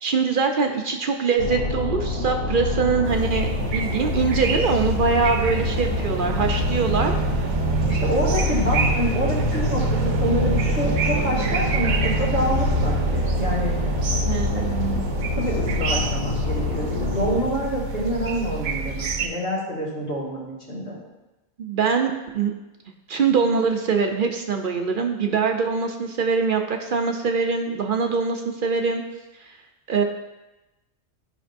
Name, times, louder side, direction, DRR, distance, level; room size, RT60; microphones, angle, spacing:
voice 1, 0.0-7.2 14.2-15.0 21.6-22.5 23.1-29.0 29.4-29.5 29.9-30.0, right 5 dB, 55° right, 4 dB, 0.7 m, -23 dB
sound 1, 1.4-17.4, left 3 dB, 75° left, 1.7 m, -27 dB
sound 2, 3.0-19.3, right 3 dB, 85° right, 1.1 m, -26 dB
voice 2, 7.9-13.7 14.5-14.7 15.4-21.0, equal, 55° left, -8 dB, 1.9 m, -27 dB
11.5 x 5.3 x 2.6 m, 1.0 s
omnidirectional pair, 1.2 m